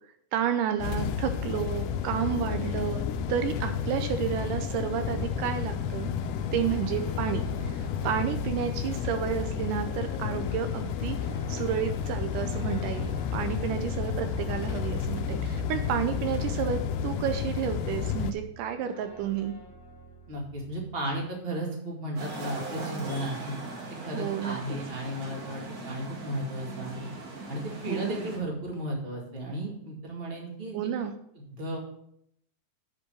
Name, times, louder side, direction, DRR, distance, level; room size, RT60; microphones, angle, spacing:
voice 1, 0.3-6.1 6.5-11.2 11.5-19.6 24.1-24.6 27.9-28.2 30.7-31.1, right 9 dB, 80° right, 7 dB, 2.1 m, -31 dB
sound 1, 0.8-18.3, left 7 dB, 80° left, 2.1 m, -31 dB
sound 2, 4.9-21.4, right 3 dB, 45° left, 0.3 m, -45 dB
voice 2, 20.3-23.6 24.0-27.1 27.5-30.9 31.4-31.8, right 1 dB, 20° right, -1 dB, 1.8 m, -34 dB
sound 3, 22.2-28.4, right 3 dB, 50° right, 2.9 m, -39 dB
8.4 x 5.2 x 6.2 m, 0.74 s
omnidirectional pair, 3.9 m